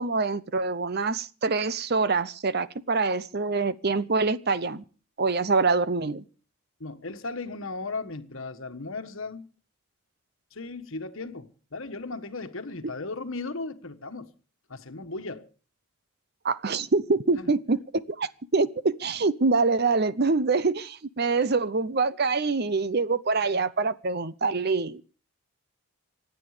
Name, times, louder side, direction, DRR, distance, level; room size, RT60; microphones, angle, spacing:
voice 1, 0.0-4.8 5.2-6.2 12.8-12.9 16.4-25.0, right 4 dB, 45° right, 0.7 m, -25 dB
voice 2, 6.8-9.5 10.5-14.3 14.7-15.5 17.3-17.5, left 3 dB, 65° left, 1.4 m, -36 dB
26.0 x 9.2 x 5.0 m
head